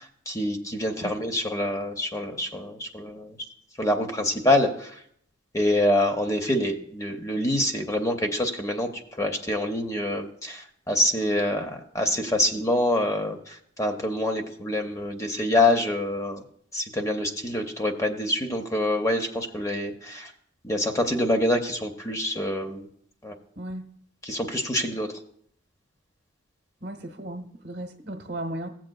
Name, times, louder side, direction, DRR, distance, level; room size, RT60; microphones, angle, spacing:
voice 1, 0.0-3.4 3.8-5.0 5.5-8.9 9.2-16.4 16.7-20.3 20.6-22.9 23.2-23.3 24.3-25.1, left 1 dB, 15° left, 5 dB, 0.6 m, -26 dB
voice 2, 23.6-23.9 26.8-28.7, right 1 dB, 55° right, 5 dB, 1.0 m, -35 dB
16.0 x 7.6 x 2.3 m, 0.67 s
head